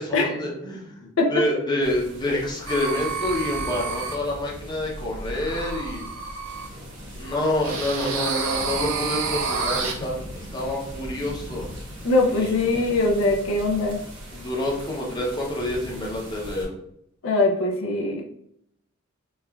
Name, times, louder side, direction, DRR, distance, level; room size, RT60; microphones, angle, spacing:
voice 1, 0.0-6.0 7.2-11.7 12.3-12.5 14.3-16.7, left 1 dB, 20° left, -3 dB, 0.6 m, -27 dB
sound 1, 1.8-16.7, equal, 65° right, 1.0 m, -39 dB
sound 2, 2.7-4.2 5.3-6.7 7.6-9.9, right 5 dB, 85° right, 0.5 m, -29 dB
voice 2, 12.0-14.0 17.2-18.2, left 2 dB, 75° left, 0 dB, 0.5 m, -21 dB
3.1 x 2.3 x 2.2 m, 0.73 s
head